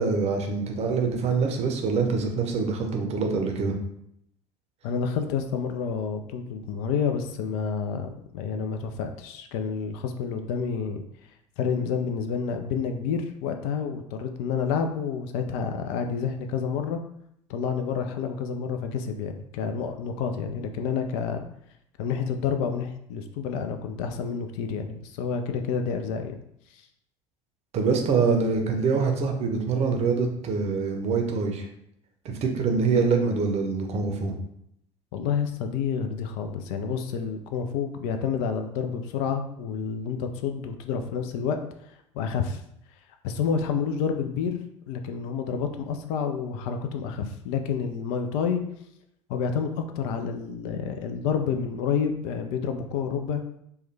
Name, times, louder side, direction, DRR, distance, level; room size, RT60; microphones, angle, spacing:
voice 1, 0.0-3.8 27.7-31.7 32.2-34.4, right 4 dB, 40° right, 3 dB, 0.6 m, -25 dB
voice 2, 4.8-11.0 11.6-17.0 17.5-21.5 22.0-26.4 35.1-41.6 42.1-42.6 43.2-48.6 49.3-53.6, left 6 dB, 60° left, 6 dB, 0.4 m, -29 dB
3.1 x 2.2 x 3.2 m, 0.73 s
figure-of-eight pair, 65°, 17 cm